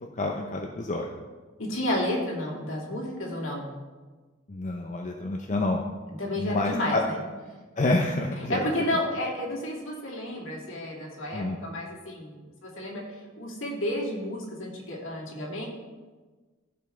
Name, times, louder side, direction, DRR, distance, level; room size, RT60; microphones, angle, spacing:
voice 1, 0.2-1.1 4.5-5.8 6.4-7.0 7.8-8.6 11.3-11.6, left 2 dB, 35° left, 1 dB, 0.6 m, -28 dB
voice 2, 1.6-3.7 6.2-7.2 8.5-13.0 13.4-15.7, left 1 dB, 65° left, -2 dB, 2.3 m, -31 dB
14.5 x 5.6 x 3.3 m, 1.3 s
head